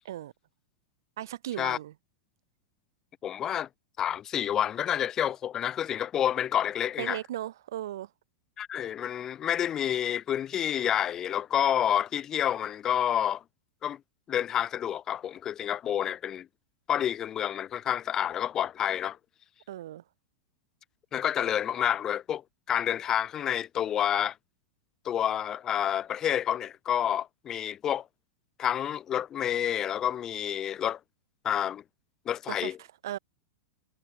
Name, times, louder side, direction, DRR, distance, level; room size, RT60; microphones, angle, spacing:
voice 1, 1.2-1.9 7.0-8.1 19.7-20.0 32.5-32.7 33.0-33.2, right 13 dB, 75° right, 0.3 m, -36 dB
voice 2, 3.2-3.7 4.0-7.2 8.6-13.4 13.8-14.0 14.3-16.5 16.9-19.2 21.1-24.4 25.0-28.1 28.6-31.0 31.4-31.8 32.3-32.8, left 10 dB, 25° left, 0.4 m, -29 dB
supercardioid pair, 135°, 2 cm